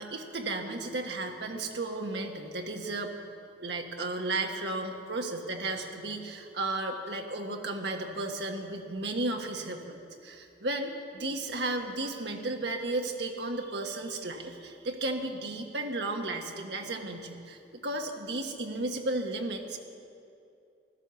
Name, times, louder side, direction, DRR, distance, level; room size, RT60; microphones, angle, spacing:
voice 1, 0.0-3.2 3.6-19.8, right 2 dB, 70° right, 3 dB, 1.4 m, -34 dB
16.0 x 12.0 x 7.1 m, 2.5 s
head